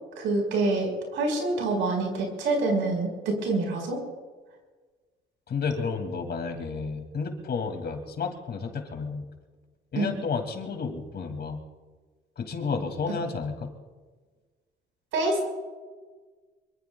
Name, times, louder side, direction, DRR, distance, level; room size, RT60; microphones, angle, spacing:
voice 1, 0.2-4.0 9.9-10.1 15.1-15.5, right 2 dB, 90° right, 2 dB, 4.9 m, -26 dB
voice 2, 5.5-9.3 9.9-11.6 12.4-13.7, left 5 dB, 55° left, 5 dB, 2.6 m, -31 dB
25.0 x 23.0 x 2.3 m, 1.4 s
cardioid pair, 90°, 20 cm